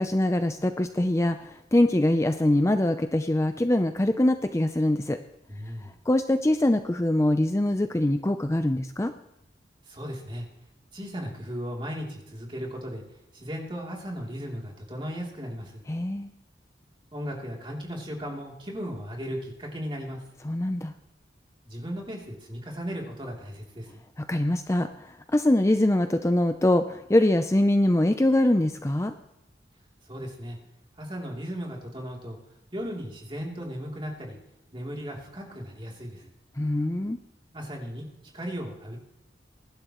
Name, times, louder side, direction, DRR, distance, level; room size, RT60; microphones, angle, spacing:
voice 1, 0.0-5.2 5.8-9.1 15.9-16.3 20.4-20.9 24.2-29.1 36.6-37.2, left 1 dB, 15° left, 8 dB, 0.5 m, -23 dB
voice 2, 5.5-6.0 9.8-10.5 10.9-13.0 13.3-15.8 17.1-20.2 21.7-23.9 30.1-30.6 31.0-32.4 32.7-34.4 34.7-36.3 37.5-38.0 38.3-39.0, equal, 30° right, -1 dB, 3.1 m, -36 dB
22.0 x 11.5 x 3.1 m, 0.89 s
head